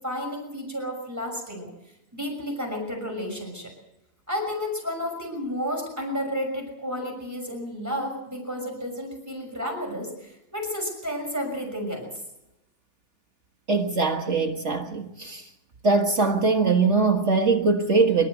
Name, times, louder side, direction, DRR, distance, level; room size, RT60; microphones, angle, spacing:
voice 1, 0.0-1.7 2.1-3.7 4.3-12.1, equal, 10° right, 6.2 m, -31 dB
voice 2, 13.7-15.4 15.8-18.3, right 4 dB, 45° right, 1.7 m, -22 dB
27.0 x 13.5 x 8.0 m
omnidirectional pair, 1.7 m